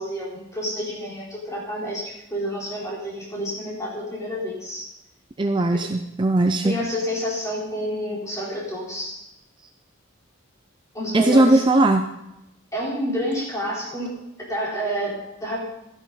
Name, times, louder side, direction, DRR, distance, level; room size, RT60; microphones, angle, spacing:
voice 1, 0.0-4.9 5.7-5.8 6.6-9.2 10.9-11.6 12.7-14.1 14.5-15.6, equal, 15° left, -5 dB, 4.2 m, -29 dB
voice 2, 5.4-6.7 11.1-12.0, right 2 dB, 25° right, 6 dB, 0.5 m, -18 dB
12.5 x 11.0 x 4.1 m, 0.89 s
head